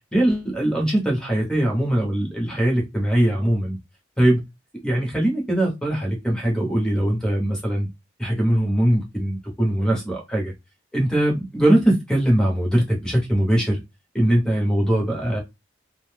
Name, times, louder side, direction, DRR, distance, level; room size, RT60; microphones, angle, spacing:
voice 1, 0.1-3.8 4.2-4.4 4.8-7.9 8.2-10.5 10.9-13.8 14.1-15.4, right 1 dB, 5° left, 1.0 m, -21 dB
2.6 x 2.1 x 3.3 m
head